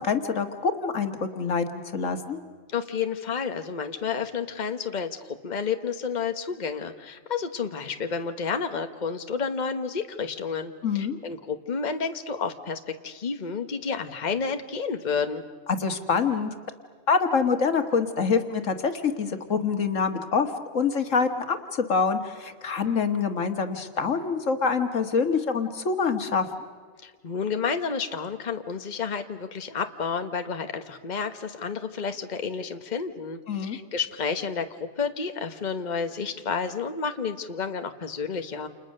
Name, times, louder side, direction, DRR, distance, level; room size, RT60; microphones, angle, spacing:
voice 1, 0.0-2.4 10.8-11.2 15.7-16.5 17.1-26.5 33.5-33.8, left 5 dB, 85° left, 7 dB, 2.0 m, -25 dB
voice 2, 2.7-15.4 27.0-38.7, left 5 dB, 35° left, 7 dB, 1.3 m, -30 dB
29.5 x 28.5 x 6.6 m, 1.5 s
omnidirectional pair, 1.3 m